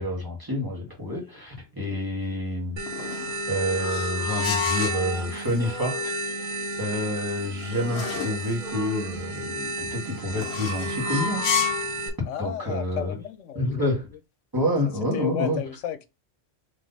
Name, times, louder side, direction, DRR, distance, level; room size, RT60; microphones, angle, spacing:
voice 1, 0.0-2.8 3.5-11.4 12.4-13.1 13.5-14.1 14.5-15.6, left 1 dB, 15° right, 1.7 m, -28 dB
sound 1, 2.8-12.1, right 1 dB, 80° right, 1.3 m, -32 dB
sound 2, 2.9-5.0 7.0-8.4 10.4-11.9, left 8 dB, 65° left, 0.9 m, -31 dB
Male singing, 4.9-7.3 7.6-9.8, equal, 5° left, 0.5 m, -42 dB
voice 2, 12.3-13.9 15.1-16.1, left 10 dB, 85° left, 1.0 m, -33 dB
3.9 x 3.2 x 3.9 m
omnidirectional pair, 1.3 m